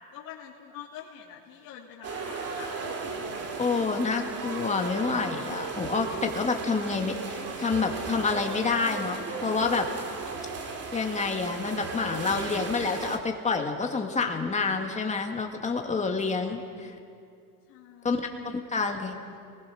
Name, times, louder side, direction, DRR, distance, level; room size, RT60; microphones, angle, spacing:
voice 1, 0.1-2.7 3.2-3.8 17.7-19.4, left 9 dB, 45° left, -5 dB, 3.0 m, -47 dB
sound 1, 2.0-13.2, right 4 dB, 30° right, 2.5 m, -36 dB
voice 2, 3.6-9.9 10.9-17.0 18.0-18.2 18.5-19.2, left 4 dB, 15° left, 3 dB, 2.1 m, -28 dB
29.5 x 20.5 x 6.5 m, 2.4 s
supercardioid pair, 135°, 47 cm